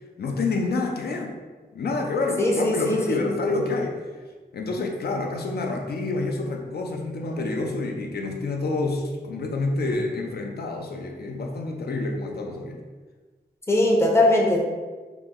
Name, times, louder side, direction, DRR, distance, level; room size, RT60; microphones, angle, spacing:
voice 1, 0.2-1.3 1.7-4.0 4.5-12.8, left 3 dB, 70° left, 1 dB, 0.5 m, -28 dB
voice 2, 2.4-3.2 13.7-14.6, left 1 dB, 15° left, -2 dB, 0.5 m, -20 dB
2.9 x 2.0 x 3.5 m, 1.4 s
wide cardioid pair, 80°, 17 cm